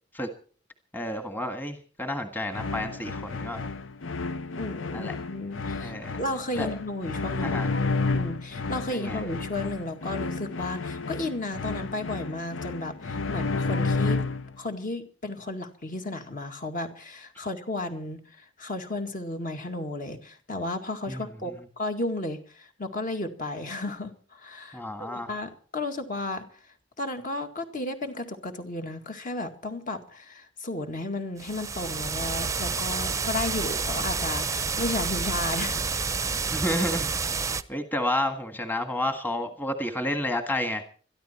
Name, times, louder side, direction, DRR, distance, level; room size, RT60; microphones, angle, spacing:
voice 1, 0.9-3.6 4.9-5.2 5.8-6.2 6.6-6.7 7.4-7.7 8.9-9.2 21.1-21.6 24.7-25.3 36.5-37.4 37.7-40.8, left 1 dB, 10° left, 7 dB, 1.6 m, -30 dB
sound 1, 2.5-14.6, left 3 dB, 80° left, 0.8 m, -31 dB
voice 2, 4.6-7.8 8.1-14.2 14.6-26.5 27.0-35.9, left 2 dB, 45° left, 5 dB, 2.0 m, -33 dB
sound 2, 31.4-37.6, right 4 dB, 15° right, 0.7 m, -29 dB
22.5 x 13.5 x 4.4 m, 0.42 s
head